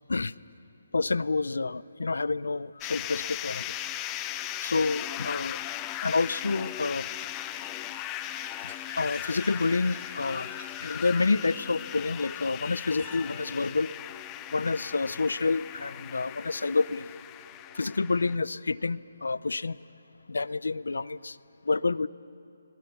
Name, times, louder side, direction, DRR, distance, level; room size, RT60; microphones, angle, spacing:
voice 1, 0.9-3.7 4.6-5.6 6.0-7.3 8.6-10.5 10.8-13.9 14.5-17.1 17.7-19.8 20.3-21.4 21.6-22.1, left 3 dB, 90° left, 19 dB, 0.6 m, -28 dB
sound 1, 2.8-18.4, left 13 dB, 20° left, 0.6 m, -38 dB
sound 2, 3.2-13.2, right 6 dB, 35° right, 2.1 m, -53 dB
27.5 x 21.5 x 7.0 m, 2.8 s
hypercardioid pair, 160°, 0 cm